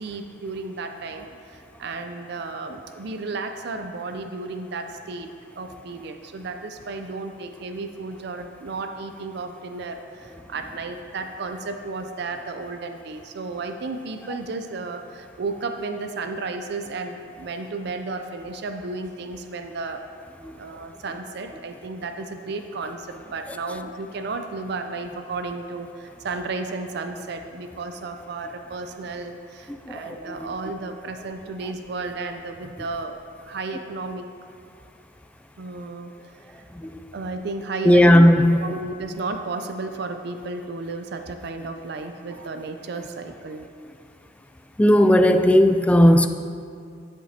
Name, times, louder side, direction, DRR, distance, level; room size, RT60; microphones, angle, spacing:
voice 1, 0.0-5.3 5.6-20.0 20.5-33.2 33.4-34.3 35.6-36.1 36.5-36.6 37.1-38.2 38.6-43.7, right 3 dB, 60° right, 6 dB, 0.5 m, -33 dB
voice 2, 29.9-30.5 36.8-37.0 37.8-38.6 44.8-46.3, equal, 5° left, 8 dB, 0.3 m, -16 dB
13.0 x 7.3 x 2.8 m, 2.4 s
head